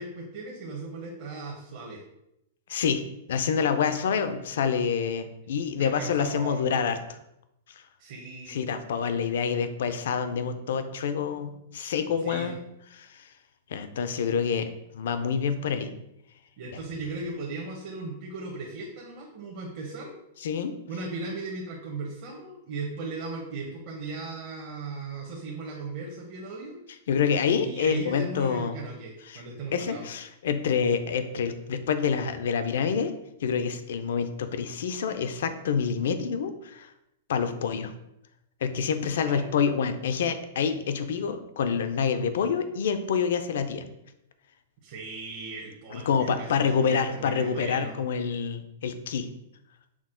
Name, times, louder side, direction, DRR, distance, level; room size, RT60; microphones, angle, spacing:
voice 1, 0.0-2.0 5.8-6.6 8.0-8.6 12.2-12.5 16.6-20.1 20.9-26.8 27.6-30.0 39.2-39.6 44.8-48.0, right 3 dB, 50° right, -2 dB, 0.8 m, -37 dB
voice 2, 2.7-3.0 3.3-7.2 8.5-12.6 12.9-13.3 13.7-15.9 20.4-20.8 27.1-28.8 29.3-29.4 29.7-33.1 33.4-36.9 37.3-37.9 38.6-43.8 45.9-49.3, left 6 dB, 75° left, 9 dB, 0.4 m, -27 dB
6.0 x 2.1 x 3.7 m, 0.82 s
hypercardioid pair, 145°, 0 cm